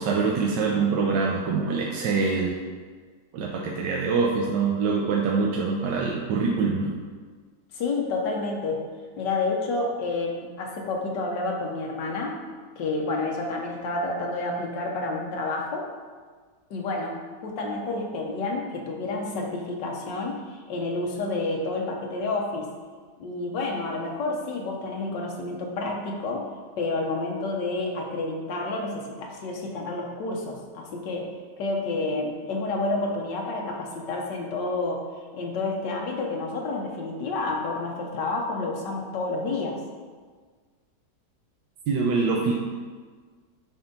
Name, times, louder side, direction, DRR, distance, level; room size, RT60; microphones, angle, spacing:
voice 1, 0.0-2.6 3.3-7.0 41.9-42.5, right 4 dB, 80° right, -2 dB, 1.3 m, -24 dB
voice 2, 7.7-8.8 9.2-12.4 12.8-15.8 16.7-22.7 23.2-26.5 26.8-35.0 35.3-39.8, left 3 dB, 80° left, 0 dB, 1.6 m, -29 dB
6.9 x 3.7 x 5.3 m, 1.5 s
omnidirectional pair, 1.9 m